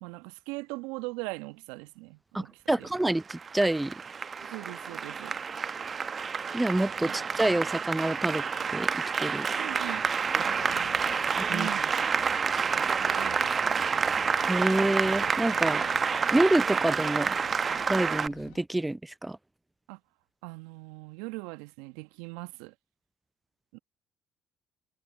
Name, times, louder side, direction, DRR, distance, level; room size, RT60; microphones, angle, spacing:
voice 1, 0.0-2.9 4.5-5.4 7.0-7.2 9.6-10.0 10.4-11.2 11.5-12.0 12.9-13.8 19.9-20.0 20.4-22.7 23.7-23.8, right 25 dB, 75° right, 1.3 m, -40 dB
voice 2, 2.3-3.9 6.5-8.4 8.7-9.5 11.4-11.7 14.5-15.8 16.3-17.4 17.9-19.4, right 1 dB, 10° right, 0.4 m, -27 dB
Applause, 3.0-18.3, right 6 dB, 40° right, 0.9 m, -29 dB
sound 1, 10.6-18.6, left 22 dB, 75° left, 1.3 m, -53 dB
hypercardioid pair, 50°, 0 cm